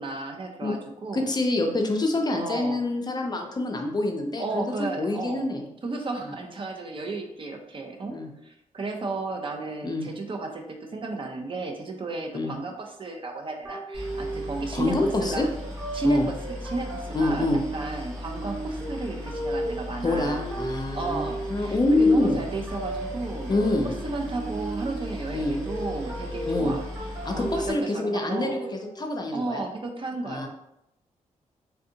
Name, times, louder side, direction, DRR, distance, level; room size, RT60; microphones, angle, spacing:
voice 1, 0.0-1.3 2.3-2.8 4.4-5.5 5.8-8.2 8.4-15.5 15.9-20.5 20.9-23.5 23.8-26.9 27.3-28.5 29.3-30.5, right 3 dB, 40° right, 3 dB, 0.5 m, -33 dB
voice 2, 1.1-5.6 6.2-6.3 8.1-8.3 9.8-10.1 12.3-12.5 14.7-15.5 16.0-16.3 17.1-17.6 20.0-22.4 23.5-23.9 25.3-25.6 26.5-26.8 27.2-29.6 30.2-30.5, left 2 dB, 30° left, 3 dB, 0.5 m, -26 dB
sound 1, 13.6-29.0, right 2 dB, 25° right, 1.0 m, -35 dB
Boat Water vehicle, 13.9-27.7, left 1 dB, 85° right, 1.3 m, -37 dB
3.4 x 2.5 x 2.7 m, 0.83 s
cardioid pair, 80°, 13 cm